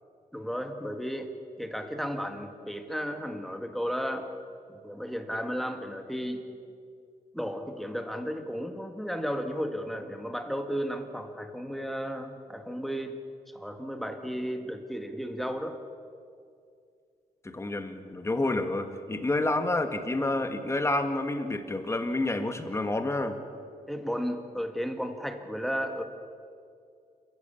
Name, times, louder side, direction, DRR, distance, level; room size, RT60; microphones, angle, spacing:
voice 1, 0.3-1.3 1.6-4.3 4.7-6.5 7.3-13.2 13.5-15.8 23.9-26.0, equal, ahead, 6 dB, 1.9 m, -34 dB
voice 2, 17.4-23.4, left 2 dB, 20° left, 7 dB, 1.8 m, -29 dB
27.5 x 14.5 x 8.5 m, 2.3 s
wide cardioid pair, 125°, 15 cm